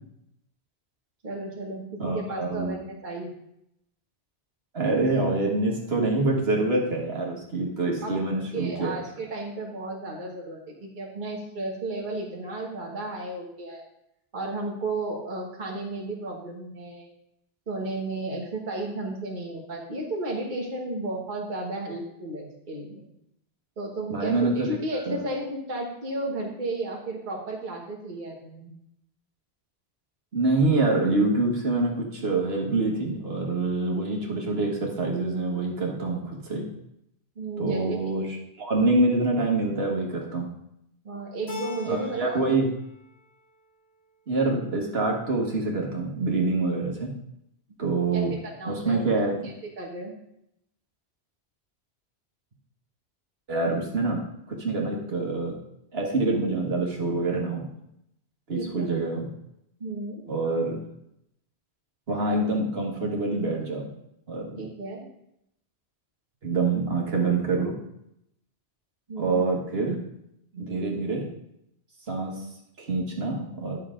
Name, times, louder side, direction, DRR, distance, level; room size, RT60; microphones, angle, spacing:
voice 1, 1.2-3.3 8.0-8.1 8.5-13.8 14.3-17.1 17.7-23.1 23.8-28.7 37.4-38.0 41.0-42.5 48.1-49.0 49.4-50.1 58.5-58.9 59.8-60.2 64.5-65.1 69.1-69.4, right 2 dB, 45° right, -2 dB, 1.4 m, -33 dB
voice 2, 2.0-2.7 4.7-8.9 24.1-24.7 25.1-25.2 30.3-36.7 37.6-38.3 38.6-40.5 41.9-42.6 44.3-47.1 47.8-48.3 48.7-49.4 53.5-54.2 54.5-55.6 55.9-57.7 58.5-59.3 60.3-60.8 62.1-63.9 64.3-64.7 66.4-67.7 69.2-70.0 70.5-71.3 72.1-72.3 72.8-73.8, right 3 dB, 70° right, -1 dB, 1.8 m, -26 dB
Keyboard (musical), 41.5-42.6 42.9-43.6, left 2 dB, 80° left, 2.2 m, -40 dB
10.5 x 6.4 x 3.7 m, 0.78 s
omnidirectional pair, 1.1 m